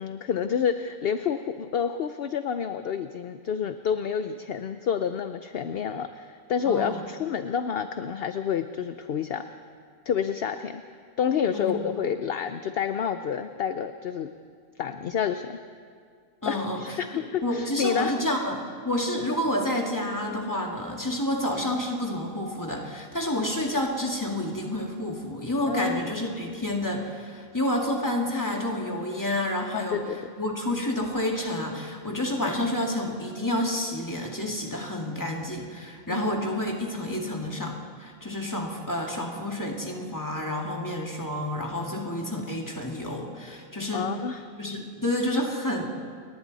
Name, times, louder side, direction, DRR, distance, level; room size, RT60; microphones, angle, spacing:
voice 1, 0.0-9.5 10.1-10.8 11.2-14.3 14.8-15.6 16.5-18.2 25.7-26.0 29.7-30.3 36.1-36.3 43.9-44.4, left 7 dB, 55° left, 9 dB, 0.7 m, -29 dB
voice 2, 6.7-7.0 11.5-11.7 16.4-17.0 17.4-30.0 30.4-44.1 44.6-45.9, left 1 dB, 15° left, 0 dB, 2.1 m, -29 dB
29.5 x 22.0 x 4.1 m, 2.1 s
omnidirectional pair, 1.5 m